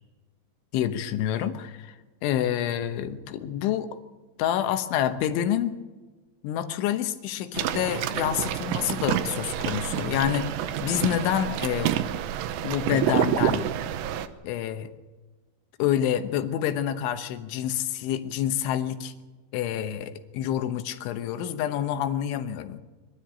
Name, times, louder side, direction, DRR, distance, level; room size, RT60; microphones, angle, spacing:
voice 1, 0.7-1.9 2.2-3.9 4.4-5.8 6.4-10.5 10.8-11.9 12.6-13.7 14.4-14.9 15.8-19.1 19.5-22.8, left 10 dB, 90° left, 9 dB, 3.5 m, -27 dB
sound 1, 7.5-14.3, right 11 dB, 80° right, 3.0 m, -28 dB
23.5 x 13.0 x 8.5 m, 1.3 s
omnidirectional pair, 5.3 m